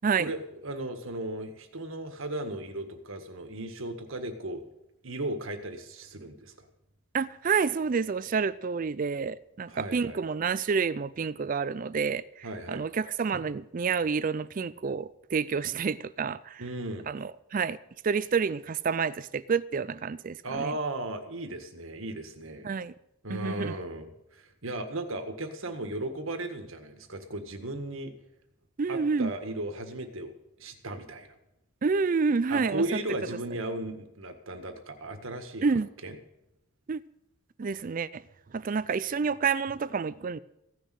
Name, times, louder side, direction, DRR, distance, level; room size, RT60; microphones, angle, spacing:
voice 1, 0.2-4.6 5.0-6.7 9.7-10.2 12.4-12.9 16.6-17.1 20.4-22.7 23.2-28.1 28.9-31.3 32.5-35.7 36.0-36.2, right 1 dB, 70° right, 1.7 m, -36 dB
voice 2, 7.1-16.6 17.1-17.8 18.0-20.8 22.6-22.9 23.3-23.8 28.8-29.3 31.8-32.8 35.6-35.9 36.9-37.0 37.6-38.2 38.5-40.4, right 5 dB, 40° right, 0.4 m, -29 dB
16.0 x 6.4 x 9.1 m
head